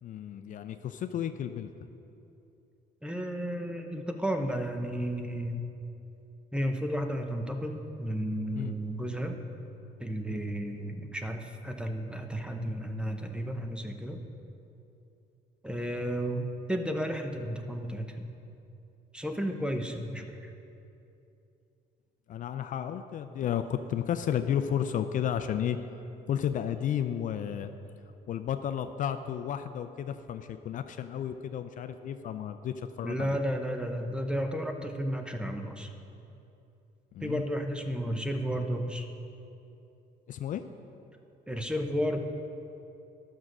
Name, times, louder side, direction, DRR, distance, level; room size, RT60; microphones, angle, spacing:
voice 1, 0.0-1.7 8.6-8.7 10.3-10.4 22.3-25.8 26.3-27.7 28.3-33.3 37.1-37.4 40.3-40.7, left 9 dB, 50° left, 9 dB, 0.4 m, -32 dB
voice 2, 3.0-5.6 6.5-9.4 10.0-14.2 15.6-18.3 19.1-20.5 33.0-35.9 37.2-39.1 41.5-42.2, equal, 5° right, 5 dB, 0.8 m, -33 dB
11.0 x 6.3 x 6.0 m, 2.8 s
cardioid pair, 110°, 17 cm